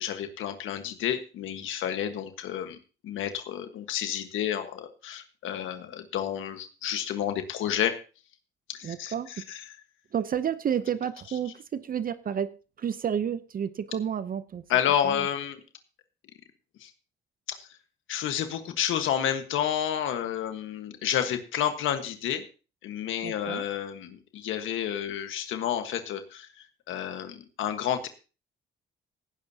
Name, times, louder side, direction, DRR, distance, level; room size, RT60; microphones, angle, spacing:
voice 1, 0.0-2.8 3.0-8.0 8.7-9.1 9.5-9.6 14.7-15.6 16.8-16.9 17.5-17.7 18.1-22.4 22.8-28.1, left 10 dB, 85° left, 1.4 m, -30 dB
voice 2, 8.8-9.4 10.1-14.6 15.0-15.3 23.2-23.7, right 8 dB, 45° right, 0.7 m, -31 dB
18.0 x 10.5 x 2.8 m
cardioid pair, 90°, 20 cm